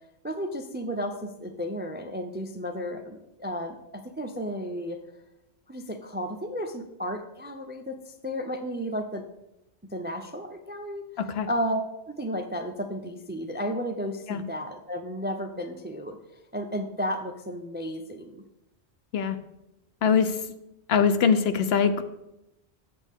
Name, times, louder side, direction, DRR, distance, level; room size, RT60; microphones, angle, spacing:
voice 1, 0.2-5.0 5.7-9.3 9.9-11.0 11.5-16.2 16.5-18.4, equal, 15° right, 6 dB, 0.3 m, -33 dB
voice 2, 11.2-11.5 14.3-14.4 19.1-19.4 20.0-20.5 20.9-22.0, left 6 dB, 70° left, 10 dB, 0.9 m, -23 dB
8.4 x 6.8 x 3.6 m, 0.89 s
omnidirectional pair, 1.1 m